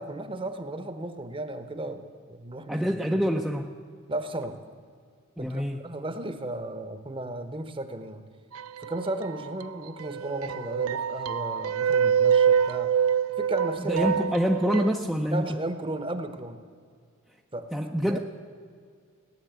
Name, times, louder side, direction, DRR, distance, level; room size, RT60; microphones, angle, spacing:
voice 1, 0.0-2.9 4.1-4.6 5.4-8.2 8.8-13.0 13.4-14.1 15.3-16.6 17.5-17.7 18.0-18.2, right 1 dB, 25° right, 9 dB, 0.9 m, -34 dB
voice 2, 2.7-3.7 5.4-5.8 13.9-15.5 17.7-18.2, equal, ahead, 1 dB, 0.5 m, -26 dB
sound 1, 8.5-9.6 10.0-15.0, right 7 dB, 65° right, 0.4 m, -26 dB
18.0 x 10.0 x 8.0 m, 2.1 s
head